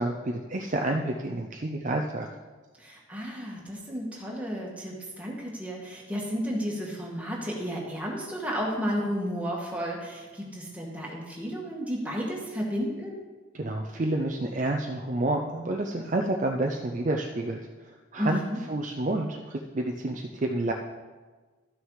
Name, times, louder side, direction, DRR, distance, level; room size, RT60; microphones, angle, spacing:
voice 1, 0.0-2.3 13.5-17.6 18.1-18.4 18.7-20.7, right 2 dB, 35° right, 2 dB, 0.5 m, -29 dB
voice 2, 2.8-13.2 18.2-18.6, equal, 5° right, -3 dB, 1.7 m, -32 dB
12.5 x 6.3 x 4.8 m, 1.3 s
head